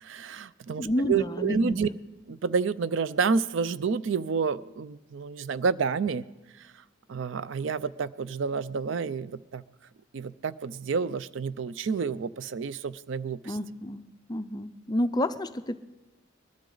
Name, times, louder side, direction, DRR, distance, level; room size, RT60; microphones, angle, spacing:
voice 1, 0.0-1.9 2.3-6.2 6.6-6.7 7.1-9.6 10.1-13.5, right 5 dB, 70° right, 17 dB, 0.4 m, -29 dB
voice 2, 0.8-1.8 13.4-14.0 14.3-15.8, left 1 dB, 20° left, 11 dB, 0.4 m, -29 dB
21.0 x 13.0 x 3.9 m, 1.1 s
head